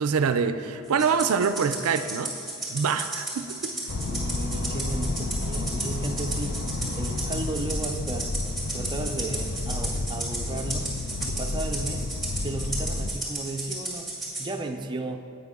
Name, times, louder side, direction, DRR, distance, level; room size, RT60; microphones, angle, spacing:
voice 1, 0.0-2.3 2.7-3.7, right 6 dB, 75° right, 10 dB, 0.4 m, -25 dB
Rattle (instrument), 1.0-14.5, right 2 dB, ahead, 1.8 m, -34 dB
sound 1, 3.9-13.1, left 2 dB, 55° left, 0.6 m, -31 dB
voice 2, 4.0-6.6 7.0-8.3 8.7-10.9 11.2-12.1 12.4-15.2, right 2 dB, 20° right, 3 dB, 0.5 m, -34 dB
11.0 x 8.2 x 3.6 m, 2.6 s
head